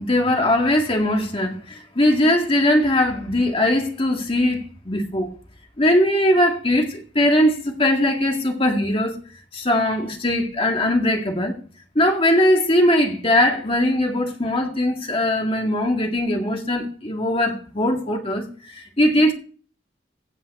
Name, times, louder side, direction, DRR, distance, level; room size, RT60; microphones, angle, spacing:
voice 1, 0.0-5.3 5.8-9.2 9.5-11.5 12.0-19.3, left 1 dB, 30° left, 1.9 m, -20 dB
16.5 x 7.3 x 4.2 m
head